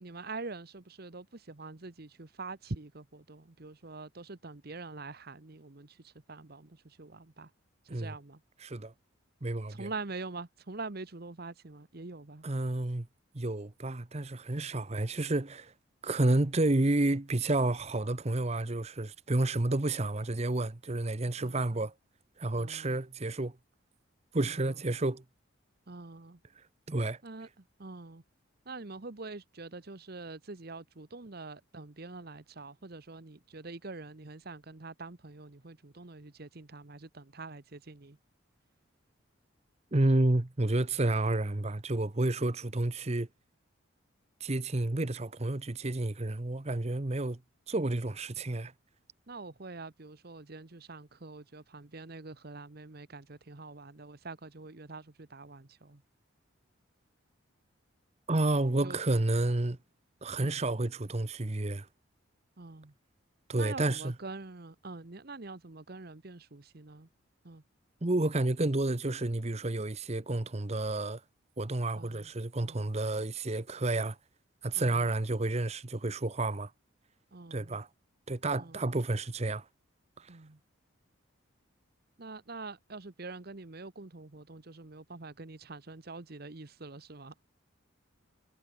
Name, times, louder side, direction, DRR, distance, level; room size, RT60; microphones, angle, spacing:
voice 1, 0.0-7.5 7.9-8.4 9.7-12.4 21.4-21.7 22.6-23.0 24.4-24.5 25.9-26.4 27.2-27.5 27.8-28.2 28.7-38.2 49.3-56.0 58.8-59.0 60.4-60.6 62.6-62.9 63.6-67.1 67.4-67.6 72.0-72.3 72.6-72.9 74.7-74.9 77.3-77.8 78.5-78.7 80.3-80.6 82.2-87.3, right 3 dB, 50° right, 1.1 m, -45 dB
voice 2, 8.6-8.9 9.4-9.9 12.4-13.1 13.3-15.7 16.0-21.9 22.4-23.5 24.3-25.2 26.9-27.2 39.9-43.3 44.4-47.4 47.7-48.7 58.3-59.8 60.2-61.9 63.5-64.1 68.0-71.2 71.6-74.2 74.6-76.7 77.5-77.9 78.3-79.6 80.2-80.3, right 2 dB, 30° right, 0.9 m, -30 dB
head